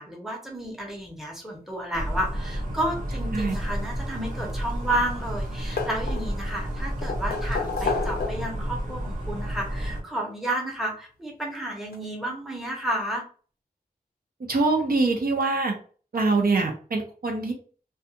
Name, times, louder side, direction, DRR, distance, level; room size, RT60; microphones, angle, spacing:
voice 1, 0.0-13.2, right 1 dB, ahead, -1 dB, 0.8 m, -31 dB
sound 1, 1.9-10.0, equal, 50° right, 1.0 m, -31 dB
sound 2, 4.4-5.1 5.4-6.5 7.0-8.7 9.9-10.0 11.5-11.6 11.9-12.0, left 4 dB, 85° left, 0.5 m, -31 dB
voice 2, 14.5-15.7 16.1-17.5, right 3 dB, 70° right, 1 dB, 0.6 m, -24 dB
2.3 x 2.2 x 2.8 m, 0.40 s
wide cardioid pair, 95°, 16 cm